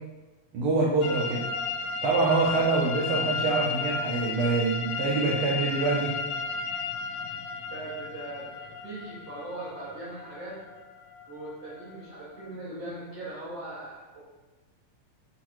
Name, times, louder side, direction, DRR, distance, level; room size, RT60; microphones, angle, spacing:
voice 1, 0.5-1.4 2.0-6.2, right 3 dB, 80° right, -2 dB, 1.2 m, -25 dB
sound 1, 1.0-12.6, left 5 dB, 85° left, 1.3 m, -34 dB
voice 2, 7.7-8.5 8.8-10.5 11.3-14.2, right 2 dB, 55° right, -12 dB, 2.9 m, -39 dB
5.9 x 4.4 x 4.7 m, 1.1 s
omnidirectional pair, 3.4 m